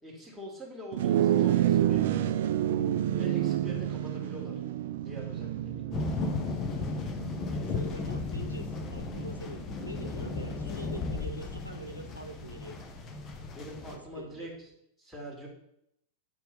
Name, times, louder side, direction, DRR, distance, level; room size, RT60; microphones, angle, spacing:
voice 1, 0.0-2.5 3.2-4.6 5.0-5.9 13.5-14.7 15.0-15.5, equal, ahead, -5 dB, 2.4 m, -44 dB
sound 1, 0.9-10.5, right 11 dB, 55° right, 0.4 m, -29 dB
sound 2, 5.9-14.0, left 4 dB, 30° left, 1.0 m, -35 dB
voice 2, 7.5-12.8 13.9-14.5, right 1 dB, 85° right, 5 dB, 0.8 m, -44 dB
7.7 x 4.5 x 5.3 m, 0.77 s
figure-of-eight pair, 90°, 0 cm